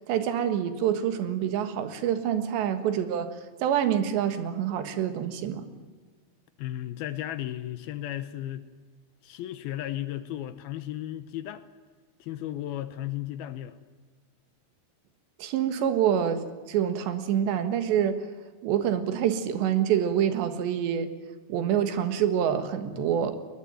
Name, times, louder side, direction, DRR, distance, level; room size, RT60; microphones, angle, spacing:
voice 1, 0.1-3.3 3.6-5.7 15.4-18.2 18.6-21.1 21.5-23.4, right 9 dB, 85° right, 9 dB, 3.9 m, -26 dB
voice 2, 6.6-8.7 9.2-11.7 12.2-13.8 22.9-23.2, left 13 dB, 75° left, 12 dB, 2.5 m, -35 dB
21.0 x 21.0 x 9.2 m, 1.4 s
omnidirectional pair, 4.9 m